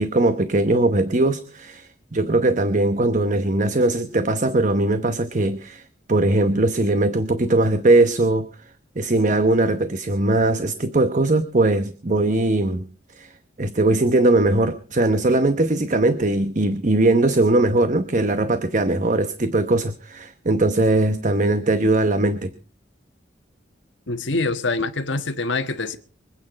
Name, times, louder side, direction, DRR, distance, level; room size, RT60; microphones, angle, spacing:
voice 1, 0.0-5.8 6.1-8.5 9.0-12.8 13.2-13.3 13.6-22.5, right 2 dB, 40° right, 1.0 m, -20 dB
voice 2, 24.1-26.0, left 3 dB, 80° left, 1.5 m, -25 dB
24.5 x 8.9 x 5.2 m
head